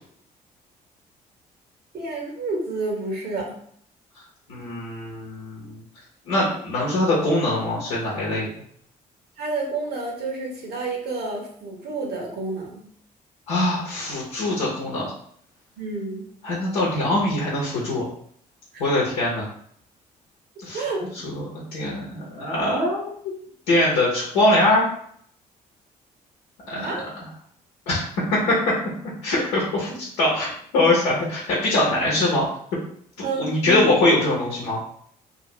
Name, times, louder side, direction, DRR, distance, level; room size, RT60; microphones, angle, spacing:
voice 1, 1.9-3.6 9.4-12.9 15.8-16.2 18.7-18.8 20.7-21.0 26.7-27.1 33.2-33.9, right 3 dB, 50° right, -1 dB, 1.1 m, -29 dB
voice 2, 4.5-5.8 6.3-8.5 13.5-15.1 16.4-18.1 18.8-19.5 20.6-20.8 21.2-21.4 21.7-23.3 23.7-24.9 26.7-26.8 27.9-28.0 28.3-28.5 29.2-32.5 33.4-34.8, left 1 dB, 70° left, -5 dB, 0.9 m, -22 dB
2.8 x 2.6 x 3.1 m, 0.64 s
figure-of-eight pair, 45°, 20 cm